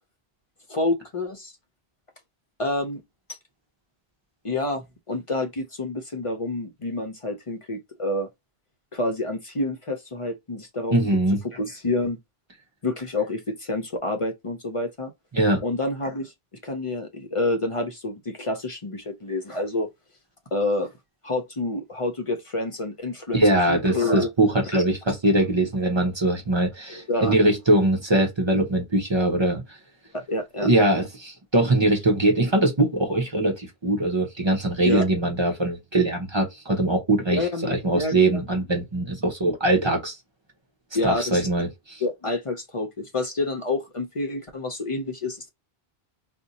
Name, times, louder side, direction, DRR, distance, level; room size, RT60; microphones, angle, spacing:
voice 1, 0.7-1.5 2.6-3.0 4.4-8.3 8.9-10.9 11.4-12.2 12.8-15.1 15.6-16.3 16.6-19.9 20.5-20.9 21.2-24.3 24.6-24.9 26.9-27.3 30.1-30.7 34.8-35.0 37.3-38.4 40.9-41.5 42.0-45.5, left 2 dB, 40° left, 0.5 m, -28 dB
voice 2, 10.9-11.4 15.3-15.6 23.3-29.8 30.6-40.2 41.0-42.0, right 1 dB, 30° right, 0.8 m, -22 dB
2.6 x 2.1 x 3.9 m
omnidirectional pair, 1.0 m